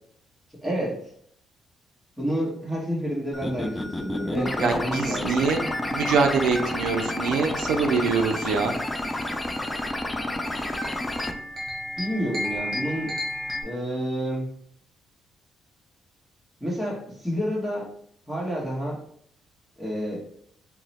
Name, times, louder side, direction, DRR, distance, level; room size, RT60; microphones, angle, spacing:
voice 1, 0.6-1.0 2.2-5.4 11.9-13.1 13.6-14.5 16.6-17.9 18.3-19.0 19.8-20.2, equal, 10° right, -4 dB, 1.4 m, -29 dB
sound 1, 3.3-11.3, left 1 dB, 15° left, 0.4 m, -30 dB
voice 2, 4.6-5.6 5.9-8.7, right 5 dB, 90° right, 4 dB, 0.4 m, -24 dB
sound 2, 5.4-13.6, left 1 dB, 45° right, 1.2 m, -36 dB
2.9 x 2.1 x 4.0 m, 0.65 s
cardioid pair, 90°, 0 cm